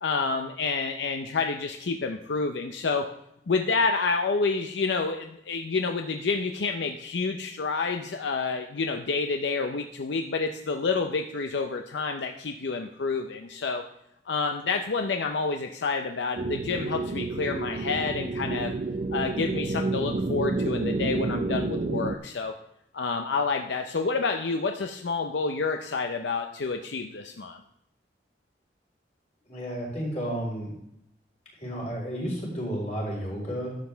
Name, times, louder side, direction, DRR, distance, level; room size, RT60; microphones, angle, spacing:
voice 1, 0.0-3.1 3.5-13.8 14.3-18.7 19.1-22.5 22.9-27.6, left 4 dB, 80° left, 5 dB, 0.6 m, -29 dB
sound 1, 16.3-22.2, right 3 dB, 45° right, 0.5 m, -29 dB
voice 2, 29.5-30.7 31.6-33.8, equal, 40° left, -4 dB, 4.1 m, -32 dB
11.5 x 7.6 x 3.4 m, 0.78 s
head